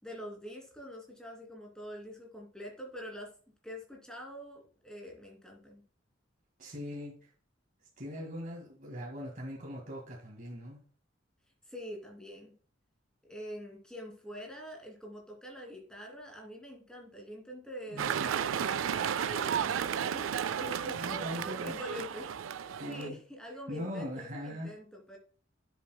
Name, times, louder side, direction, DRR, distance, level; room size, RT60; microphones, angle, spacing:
voice 1, 0.0-3.3 3.6-5.8 11.7-12.5 13.2-20.3 20.6-21.1 21.4-25.2, equal, 5° left, 2.7 m, -45 dB
voice 2, 6.6-7.2 8.0-10.8 17.9-18.4 20.9-21.7 22.8-23.2 23.7-24.7, equal, 45° right, 1.9 m, -40 dB
sound 1, 18.0-23.1, right 8 dB, 85° right, 0.4 m, -33 dB
10.0 x 7.5 x 2.2 m
head